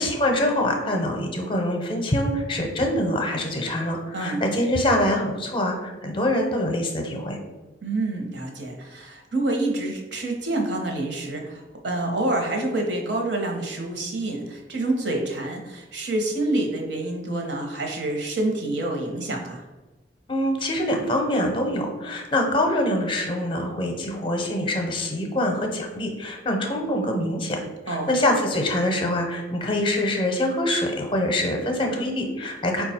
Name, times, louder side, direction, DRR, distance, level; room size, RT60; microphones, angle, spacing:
voice 1, 0.0-7.4 20.3-32.8, left 1 dB, 25° left, 2 dB, 0.6 m, -24 dB
voice 2, 7.8-19.6 27.9-28.1, right 2 dB, 70° right, 2 dB, 0.9 m, -27 dB
4.8 x 2.3 x 4.2 m, 1.1 s
head